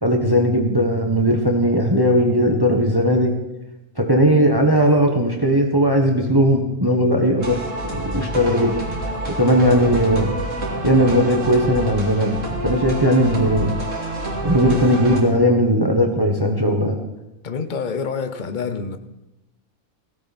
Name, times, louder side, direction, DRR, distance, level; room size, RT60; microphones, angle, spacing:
voice 1, 0.0-3.3 4.0-7.6 7.9-8.8 9.0-10.3 10.8-13.7 14.4-17.0, equal, 15° right, 1.5 m, -18 dB
sound 1, 7.4-15.2, right 1 dB, 65° right, 3.3 m, -28 dB
voice 2, 17.4-19.0, left 5 dB, 40° left, 1.1 m, -27 dB
17.0 x 16.0 x 4.3 m
omnidirectional pair, 1.4 m